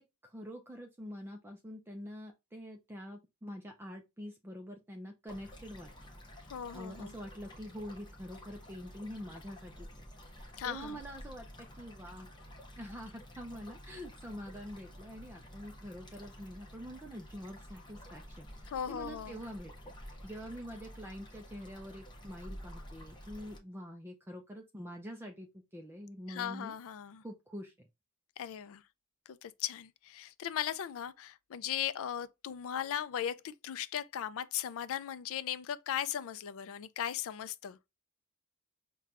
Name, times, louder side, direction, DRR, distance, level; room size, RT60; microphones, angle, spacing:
voice 1, 0.0-5.9 6.7-9.9 10.3-12.3 12.8-19.7 20.0-25.5 25.7-26.7 27.2-27.9, equal, 10° right, 0.4 m, -46 dB
sound 1, 5.3-23.6, equal, 20° left, 0.8 m, -51 dB
voice 2, 6.5-7.2 10.6-11.0 18.7-19.4 26.3-27.2 28.4-28.8 29.3-37.8, left 10 dB, 65° left, 0.3 m, -38 dB
5.6 x 2.2 x 2.5 m
head